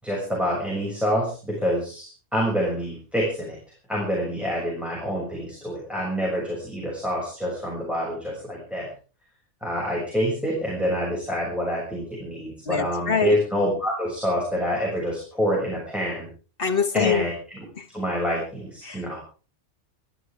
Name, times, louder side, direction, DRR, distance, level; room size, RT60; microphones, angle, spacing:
voice 1, 0.0-3.6 3.9-8.9 9.6-16.3 16.9-17.6 17.9-19.2, equal, ahead, -3 dB, 6.6 m, -27 dB
voice 2, 12.6-13.3 16.6-17.2 17.8-17.9 18.8-19.0, left 6 dB, 50° left, 7 dB, 1.7 m, -24 dB
23.0 x 14.5 x 3.6 m, 0.37 s
omnidirectional pair, 1.2 m